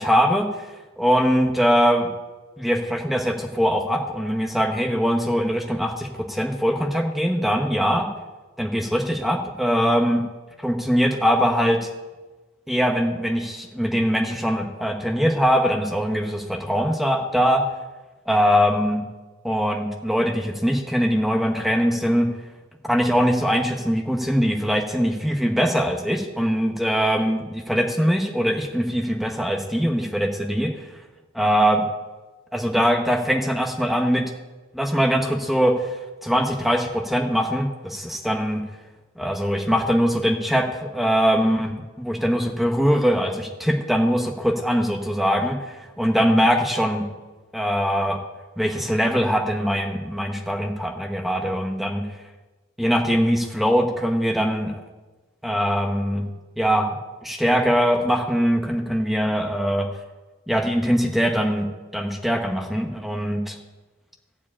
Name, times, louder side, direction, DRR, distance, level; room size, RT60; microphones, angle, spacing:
voice 1, 0.0-2.1 2.6-8.1 8.6-10.2 10.6-11.9 12.7-17.6 18.3-19.0 19.4-22.3 22.9-30.7 31.4-31.8 32.5-34.2 34.7-38.6 39.2-47.0 47.5-48.2 48.6-52.0 52.8-54.8 55.4-56.2 56.6-56.9 57.2-59.9 60.5-61.7 61.9-63.6, equal, ahead, 2 dB, 1.0 m, -22 dB
14.5 x 5.0 x 8.5 m, 1.2 s
head